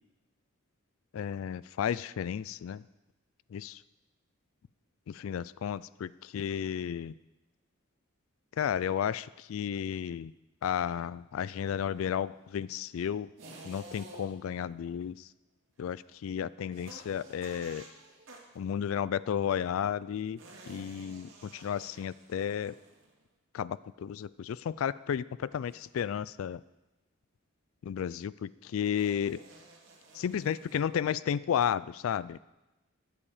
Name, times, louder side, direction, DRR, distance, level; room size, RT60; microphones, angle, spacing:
voice 1, 1.1-2.8 3.5-3.8 5.1-7.1 8.6-10.3 10.6-13.3 13.6-15.3 15.8-17.8 18.6-20.4 20.7-22.8 23.5-26.6 27.8-29.4 30.1-32.4, left 8 dB, 80° left, 19 dB, 0.3 m, -33 dB
sound 1, 13.4-14.5 16.7-18.6 20.4-23.2 25.7-26.0 29.0-30.8, right 2 dB, 70° right, 2.4 m, -52 dB
15.5 x 10.0 x 4.9 m, 1.0 s
head